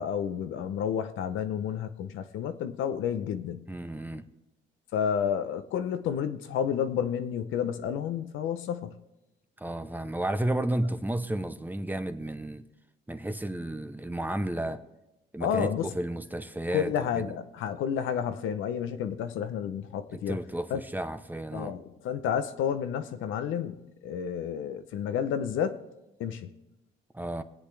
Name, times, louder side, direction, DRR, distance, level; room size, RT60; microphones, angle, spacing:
voice 1, 0.0-3.6 4.9-9.0 15.4-15.9 16.7-20.4 20.7-20.8 21.5-25.8 26.2-26.5, left 8 dB, 85° left, 0.8 m, -30 dB
voice 2, 3.7-4.2 9.6-12.6 13.1-14.8 15.3-17.4 20.1-21.8 27.1-27.4, right 1 dB, 10° right, 0.8 m, -32 dB
23.0 x 8.2 x 3.4 m
cardioid pair, 90°, 20 cm